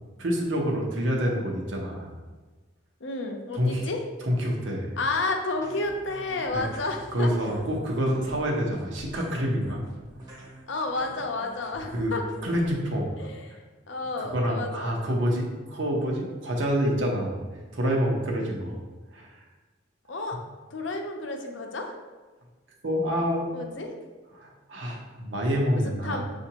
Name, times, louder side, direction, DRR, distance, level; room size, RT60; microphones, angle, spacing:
voice 1, 0.2-2.1 3.5-3.9 4.2-4.9 6.5-6.6 7.1-9.8 10.4-10.5 11.9-12.1 12.4-13.1 14.2-17.4 17.7-18.8 19.1-19.3 22.8-23.8 24.3-26.2, equal, 75° right, 0 dB, 0.8 m, -27 dB
voice 2, 3.0-4.0 5.0-7.3 10.7-12.3 13.2-13.6 13.9-14.9 20.1-20.4 20.7-21.9 23.5-23.9 25.8-26.2, left 3 dB, 70° left, 3 dB, 0.6 m, -31 dB
sound 1, 5.6-12.7, right 2 dB, 20° right, 0.7 m, -47 dB
6.7 x 2.5 x 2.9 m, 1.3 s
head